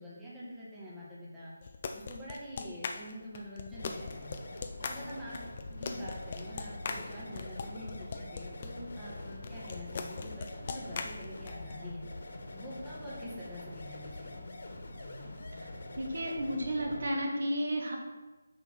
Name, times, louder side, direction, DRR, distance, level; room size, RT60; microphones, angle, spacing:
voice 1, 0.0-1.5 1.9-4.4 4.8-5.4 5.7-14.4, equal, 5° right, -9 dB, 1.8 m, -45 dB
sound 1, 1.6-8.7 9.4-11.7, left 5 dB, 30° left, 0.6 m, -40 dB
sound 2, 3.7-17.1, left 2 dB, 55° left, 1.7 m, -45 dB
voice 2, 16.0-18.0, equal, 60° right, 0 dB, 2.0 m, -32 dB
6.8 x 5.7 x 6.2 m, 1.2 s
figure-of-eight pair, 170°, 0 cm